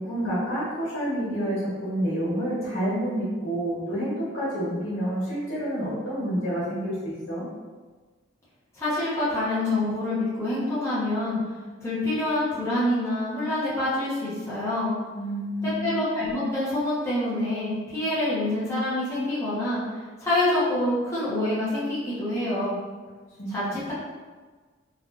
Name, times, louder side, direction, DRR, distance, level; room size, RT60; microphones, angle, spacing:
voice 1, 0.0-7.4 15.1-15.9 23.4-23.8, equal, 90° left, -8 dB, 1.5 m, -28 dB
voice 2, 8.8-11.4 11.8-14.9 15.6-19.8 20.2-22.8 23.5-23.9, left 1 dB, 15° left, -11 dB, 0.9 m, -26 dB
3.4 x 2.4 x 2.4 m, 1.4 s
head